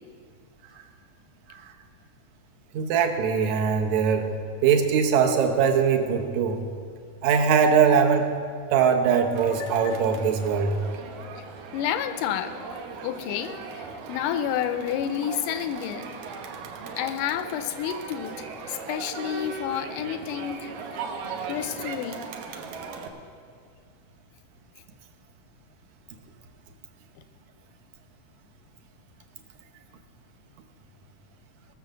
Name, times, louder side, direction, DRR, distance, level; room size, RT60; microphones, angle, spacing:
voice 1, 2.7-4.3 4.6-6.6 7.2-8.3 8.7-10.7, right 6 dB, 70° right, 5 dB, 2.1 m, -21 dB
Crowd, 9.3-23.1, right 5 dB, 85° right, 2.7 m, -38 dB
voice 2, 9.6-10.0 11.4-11.5 11.7-12.6 13.0-16.1 17.0-20.7 21.5-22.3, left 10 dB, 80° left, 10 dB, 2.1 m, -30 dB
18.5 x 7.1 x 6.5 m, 2.1 s
omnidirectional pair, 3.8 m